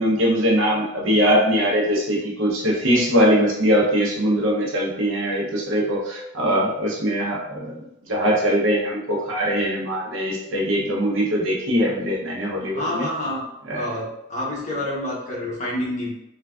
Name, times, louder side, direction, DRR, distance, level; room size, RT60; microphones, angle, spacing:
voice 1, 0.0-13.1 13.7-13.9, equal, 65° right, -2 dB, 0.6 m, -21 dB
voice 2, 12.7-13.4 13.7-16.1, left 1 dB, 35° left, -5 dB, 0.9 m, -28 dB
3.2 x 2.3 x 2.3 m, 0.87 s
head